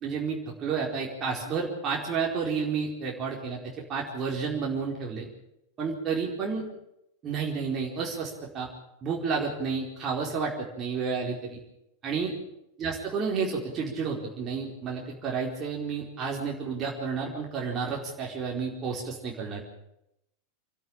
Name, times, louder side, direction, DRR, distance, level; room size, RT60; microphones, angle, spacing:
voice 1, 0.0-3.6 3.9-5.3 5.8-6.6 7.2-8.7 9.0-11.6 12.0-12.3 12.8-19.6, right 5 dB, 30° right, -2 dB, 4.5 m, -31 dB
27.0 x 12.5 x 8.9 m, 0.82 s
figure-of-eight pair, 90°, 0 cm